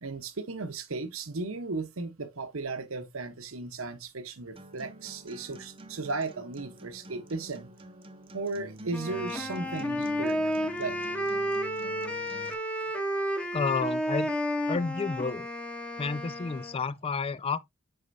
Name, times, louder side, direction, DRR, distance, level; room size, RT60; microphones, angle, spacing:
voice 1, 0.0-7.7 8.3-10.5 10.8-11.0, right 3 dB, 70° right, 1.0 m, -35 dB
Acoustic guitar, 4.6-12.5, right 1 dB, 25° right, 0.8 m, -47 dB
Wind instrument woodwind instrument, 8.9-16.8, equal, 5° left, 1.0 m, -32 dB
voice 2, 13.5-14.3 14.7-15.5 16.0-17.6, left 4 dB, 25° left, 0.3 m, -30 dB
7.8 x 5.6 x 2.7 m
head